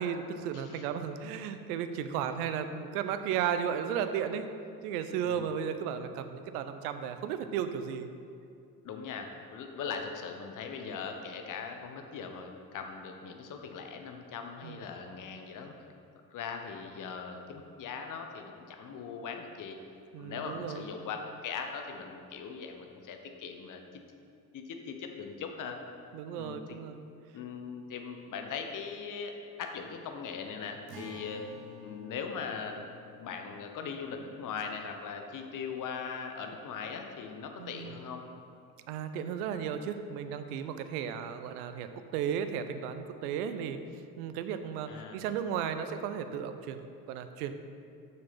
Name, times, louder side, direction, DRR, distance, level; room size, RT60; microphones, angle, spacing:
voice 1, 0.0-4.4 4.8-8.1 14.6-14.8 20.1-20.9 26.1-27.0 37.6-38.0 38.9-43.8 44.2-46.8 47.1-47.5, right 8 dB, 65° right, 9 dB, 0.8 m, -34 dB
voice 2, 0.5-0.8 5.2-5.5 8.8-15.8 16.3-19.8 20.2-23.8 24.5-25.8 26.4-26.8 27.3-29.3 29.6-31.4 31.8-32.9 33.2-38.2 44.9-45.2, left 6 dB, 40° left, 4 dB, 1.1 m, -40 dB
Acoustic guitar, 30.9-36.4, left 2 dB, 80° right, 1.2 m, -52 dB
7.6 x 6.0 x 5.9 m, 2.5 s
figure-of-eight pair, 60°, 49 cm